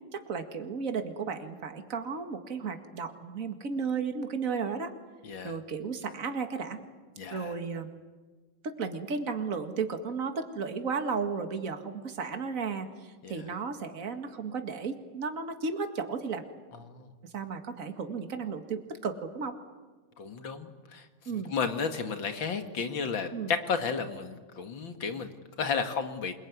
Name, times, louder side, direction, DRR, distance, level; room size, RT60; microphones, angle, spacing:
voice 1, 0.1-4.9 5.4-6.8 7.3-7.9 8.6-16.4 17.2-19.5 21.3-21.5 23.3-23.5, right 5 dB, 45° right, 7 dB, 2.3 m, -34 dB
voice 2, 5.2-5.6 7.2-7.5 13.2-13.4 16.9-17.1 20.2-21.1 21.3-25.3 25.6-26.3, left 5 dB, 75° left, 7 dB, 2.7 m, -33 dB
28.0 x 21.0 x 9.6 m, 1.3 s
omnidirectional pair, 2.1 m